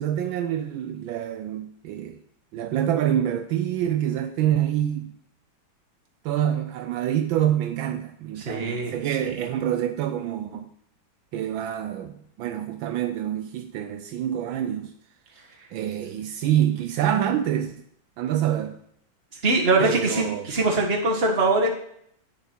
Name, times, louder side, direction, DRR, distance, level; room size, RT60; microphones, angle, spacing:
voice 1, 0.0-2.2 2.5-5.1 6.2-10.7 11.3-14.9 15.7-17.7 18.2-18.8 19.8-20.5, right 11 dB, 80° right, 8 dB, 1.3 m, -26 dB
voice 2, 8.4-8.9 19.4-21.7, right 2 dB, 30° right, -1 dB, 1.7 m, -22 dB
9.8 x 6.8 x 4.4 m, 0.70 s
omnidirectional pair, 2.2 m